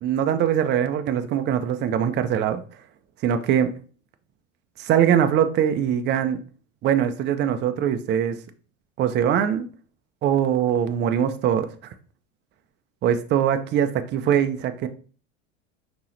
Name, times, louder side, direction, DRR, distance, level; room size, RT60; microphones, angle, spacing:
voice 1, 0.0-2.6 3.2-3.7 4.8-6.4 6.8-8.4 9.0-9.7 10.2-11.7 13.0-14.9, right 9 dB, 30° right, 9 dB, 0.5 m, -22 dB
5.3 x 3.0 x 3.1 m, 0.40 s
hypercardioid pair, 85°, 39 cm